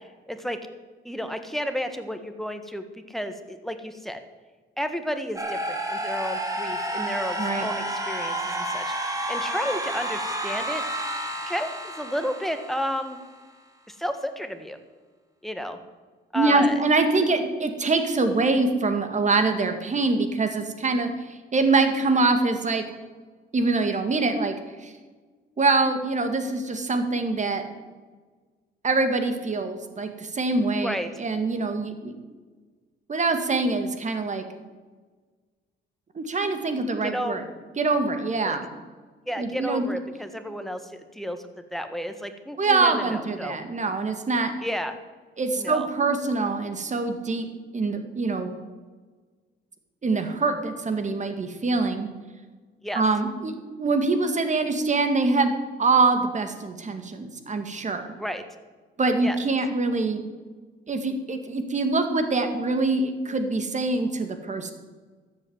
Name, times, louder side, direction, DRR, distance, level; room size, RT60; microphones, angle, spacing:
voice 1, 0.3-0.7 1.0-4.2 4.8-8.8 9.3-10.8 11.4-13.2 13.9-14.8 15.4-15.8 16.3-16.8 30.8-31.1 37.0-37.4 38.4-38.6 39.3-43.6 44.6-44.9 45.6-45.9 52.8-53.0 58.2-58.4 59.2-59.4, equal, ahead, 8 dB, 1.6 m, -32 dB
sound 1, 5.4-13.3, right 1 dB, 15° right, 2.8 m, -30 dB
voice 2, 7.4-7.7 16.3-22.8 23.5-24.5 24.8-24.9 25.6-27.6 28.8-32.1 33.1-34.4 36.1-37.4 37.8-38.7 39.4-39.9 42.6-44.5 45.4-47.5 47.7-48.5 50.0-52.1 52.9-53.5 53.8-55.5 55.8-58.1 59.0-60.2 60.9-64.7, right 3 dB, 35° right, 7 dB, 2.1 m, -24 dB
13.5 x 8.2 x 8.1 m, 1.4 s
cardioid pair, 90°, 20 cm